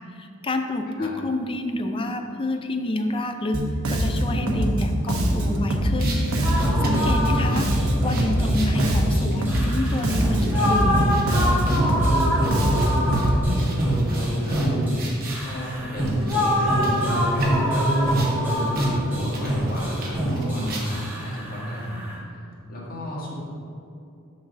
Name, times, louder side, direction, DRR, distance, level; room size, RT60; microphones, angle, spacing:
voice 1, 0.1-3.6 3.9-6.2 6.8-7.7 8.0-11.1, left 2 dB, 25° left, 6 dB, 0.4 m, -28 dB
Bass guitar, 3.5-13.4, equal, 85° right, 0.9 m, -23 dB
sound 1, 6.0-15.5 16.0-18.3 18.7-18.9 19.2-21.1, right 3 dB, 45° right, 1.1 m, -40 dB
sound 2, 6.4-22.2, equal, 10° right, 1.4 m, -24 dB
voice 2, 12.6-14.6 15.4-23.3, equal, 45° left, -5 dB, 1.6 m, -34 dB
6.0 x 4.1 x 6.3 m, 2.5 s
head